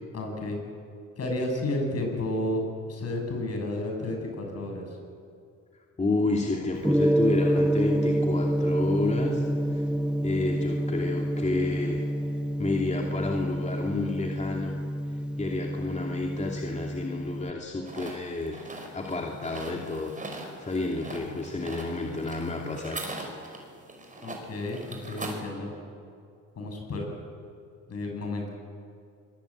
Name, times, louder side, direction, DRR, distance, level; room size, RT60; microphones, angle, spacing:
voice 1, 0.1-0.6 1.2-2.6 2.9-5.0 24.2-25.7 26.6-27.1 27.9-28.5, left 1 dB, 55° left, 2 dB, 7.9 m, -31 dB
voice 2, 6.0-9.4 9.7-9.8 10.2-12.0 12.6-14.7 15.4-18.6 18.9-23.0, left 3 dB, 25° left, 0 dB, 2.8 m, -30 dB
Gong, 6.8-17.5, right 1 dB, 5° right, 0.7 m, -28 dB
sound 1, 17.9-25.4, right 2 dB, 25° right, 5.5 m, -41 dB
26.0 x 22.0 x 8.8 m, 2.3 s
cardioid pair, 90°, 30 cm